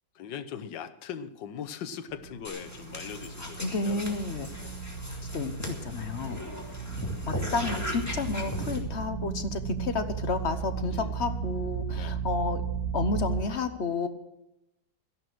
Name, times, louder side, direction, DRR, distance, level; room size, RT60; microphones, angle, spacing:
voice 1, 0.1-4.8 6.3-6.8 10.9-11.2 11.9-12.2, left 8 dB, 75° left, 9 dB, 1.6 m, -41 dB
sound 1, 2.1-13.4, right 6 dB, 60° right, 2.2 m, -35 dB
sound 2, 2.4-8.8, left 1 dB, 10° left, 2.4 m, -38 dB
voice 2, 3.4-4.5 5.3-6.4 7.2-12.6 12.9-14.1, left 3 dB, 45° left, 8 dB, 1.1 m, -31 dB
14.0 x 11.5 x 6.2 m, 0.89 s
omnidirectional pair, 2.0 m